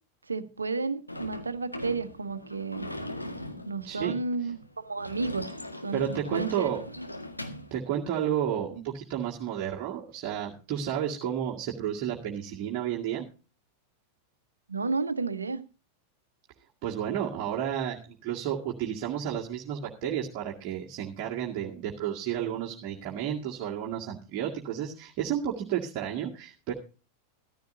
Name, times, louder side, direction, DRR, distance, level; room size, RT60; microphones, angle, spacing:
voice 1, 0.3-2.9 3.7-5.5 5.8-6.7 14.7-15.6, right 4 dB, 75° right, 1.2 m, -32 dB
Sliding door / Slam, 1.1-7.7, left 1 dB, 85° left, 1.8 m, -40 dB
voice 2, 3.8-4.2 5.9-6.8 7.7-13.3 16.8-26.7, right 10 dB, 40° right, 2.1 m, -32 dB
15.0 x 14.0 x 2.7 m
figure-of-eight pair, 90°, 0 cm